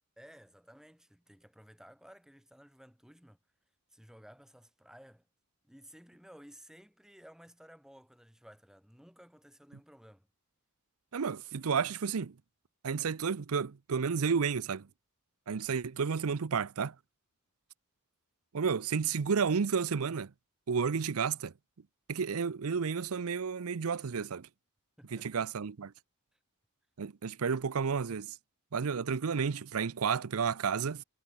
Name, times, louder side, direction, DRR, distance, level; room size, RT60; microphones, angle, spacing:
voice 1, 0.2-3.4 3.9-5.3 5.6-10.3 25.0-25.3, equal, ahead, 4.3 m, -56 dB
voice 2, 11.1-12.3 12.8-14.9 15.5-16.9 18.5-20.3 20.7-21.5 22.1-24.5 25.1-25.9 27.0-28.4 28.7-31.0, right 6 dB, 75° right, 0.6 m, -31 dB
head